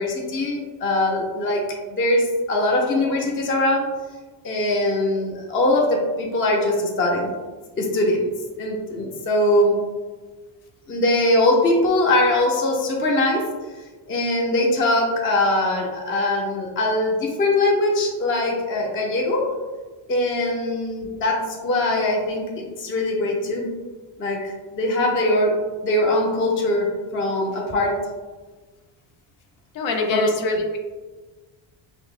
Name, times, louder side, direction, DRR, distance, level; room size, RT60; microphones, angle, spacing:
voice 1, 0.0-1.6 1.9-3.9 4.4-7.3 7.8-8.3 8.6-9.8 10.9-13.5 14.1-19.5 20.1-23.7 24.2-25.6 25.8-26.9 27.1-28.0 30.1-30.3, left 1 dB, 25° left, -1 dB, 0.5 m, -21 dB
voice 2, 29.7-30.8, left 2 dB, 65° left, 3 dB, 0.6 m, -24 dB
5.3 x 2.1 x 2.4 m, 1.3 s
cardioid pair, 140°, 50 cm